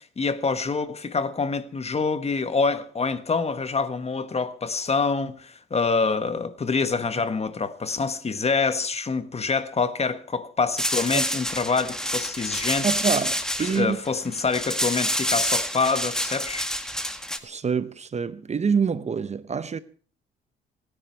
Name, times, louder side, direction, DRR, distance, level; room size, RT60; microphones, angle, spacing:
voice 1, 0.0-12.9 13.6-16.7, left 4 dB, 30° left, 1.4 m, -26 dB
sound 1, 10.8-17.4, equal, 5° left, 1.9 m, -27 dB
voice 2, 12.8-14.0 17.4-19.8, right 6 dB, 35° right, 0.9 m, -26 dB
26.5 x 10.0 x 4.6 m
cardioid pair, 90°, 20 cm